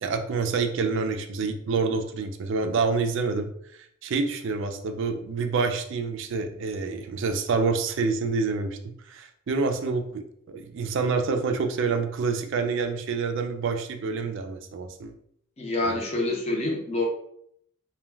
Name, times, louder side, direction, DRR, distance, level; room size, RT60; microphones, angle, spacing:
voice 1, 0.0-3.5 4.0-15.1 15.8-16.0, right 4 dB, 60° right, 6 dB, 0.3 m, -27 dB
voice 2, 15.6-17.1, left 2 dB, 30° left, -1 dB, 0.5 m, -27 dB
2.2 x 2.2 x 3.3 m, 0.69 s
head